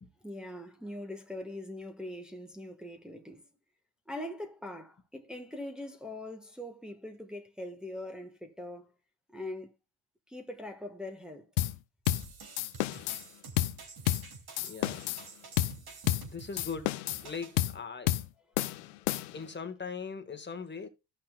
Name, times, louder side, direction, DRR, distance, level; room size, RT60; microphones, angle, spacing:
voice 1, 0.2-3.5 4.1-8.9 9.3-9.7 10.3-11.5 14.6-14.7 18.8-18.9, left 1 dB, ahead, 1.6 m, -42 dB
sound 1, 11.6-11.8 12.1-12.3 12.6-13.2 13.6-13.8 14.1-14.3 14.6-15.2 15.6-15.8 16.1-16.3 16.6-17.3 17.6-17.8 18.1-18.3 18.6-19.5, left 15 dB, 90° left, 0.9 m, -30 dB
sound 2, 12.1-17.6, right 4 dB, 45° right, 3.0 m, -48 dB
voice 2, 14.6-15.1 16.3-18.2 19.3-20.9, left 5 dB, 20° left, 1.7 m, -40 dB
14.5 x 5.8 x 2.4 m
cardioid pair, 90°, 49 cm